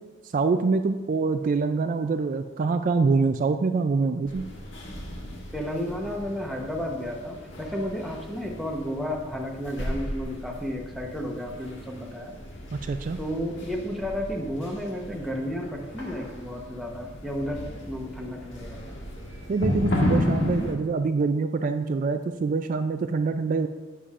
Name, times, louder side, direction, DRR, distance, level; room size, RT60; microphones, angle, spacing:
voice 1, 0.2-4.4 12.7-13.2 19.5-23.7, right 4 dB, 40° right, 8 dB, 0.3 m, -25 dB
sound 1, 4.3-20.7, left 1 dB, 65° left, 1.6 m, -34 dB
voice 2, 5.5-12.3 13.2-19.0, equal, ahead, -1 dB, 1.0 m, -32 dB
11.0 x 8.3 x 2.5 m, 1.3 s
head